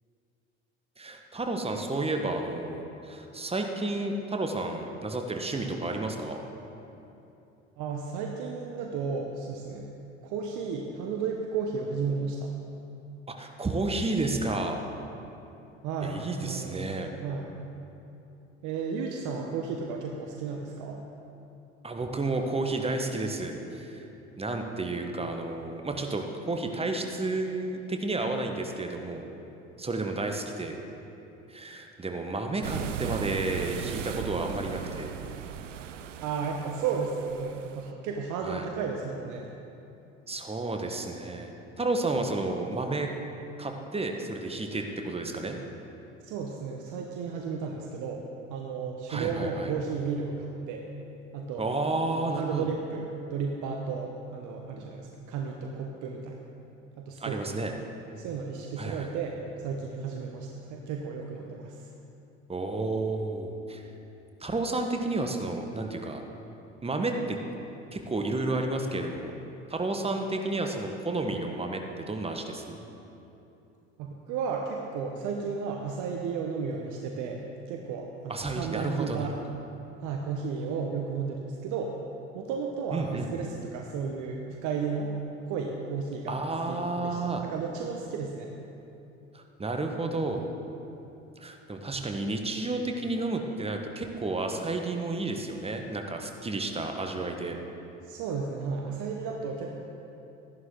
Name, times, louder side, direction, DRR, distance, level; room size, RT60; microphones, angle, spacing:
voice 1, 1.0-6.4 13.4-14.8 16.0-17.1 21.8-24.0 24.4-29.3 29.8-30.8 31.5-35.1 38.4-38.7 40.3-43.1 43.6-45.6 49.1-49.7 51.6-52.7 57.2-57.7 58.8-59.1 62.5-63.8 64.4-66.2 66.8-67.4 67.9-69.3 69.7-72.8 78.3-79.3 82.9-83.4 86.3-87.4 89.3-90.5 91.4-97.6, right 2 dB, 15° right, 4 dB, 1.3 m, -31 dB
voice 2, 7.8-9.9 10.2-12.5 15.8-17.0 17.2-17.5 18.6-21.0 36.2-39.5 46.2-48.2 48.5-50.8 51.3-51.7 52.2-56.4 57.0-57.5 58.2-61.9 74.0-79.4 80.0-81.9 82.3-85.1 85.5-88.5 98.0-99.8, right 5 dB, 55° right, 1 dB, 1.0 m, -33 dB
sound 1, 32.6-37.9, right 9 dB, 85° right, 0.5 m, -37 dB
13.5 x 11.0 x 3.8 m, 2.9 s
figure-of-eight pair, 60°, 36 cm